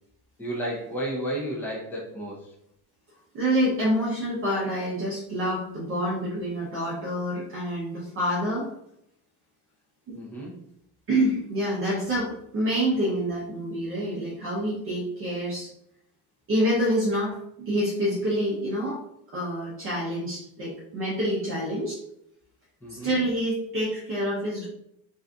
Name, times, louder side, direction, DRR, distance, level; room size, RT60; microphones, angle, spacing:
voice 1, 0.4-2.5 10.1-10.6 22.8-23.2, right 1 dB, 5° left, -5 dB, 0.5 m, -32 dB
voice 2, 3.3-8.7 10.1-10.2 11.1-15.7 16.5-19.0 19.3-22.0 22.9-24.6, equal, 35° right, -6 dB, 0.7 m, -27 dB
2.6 x 2.3 x 3.5 m, 0.76 s
cardioid pair, 175°, 39 cm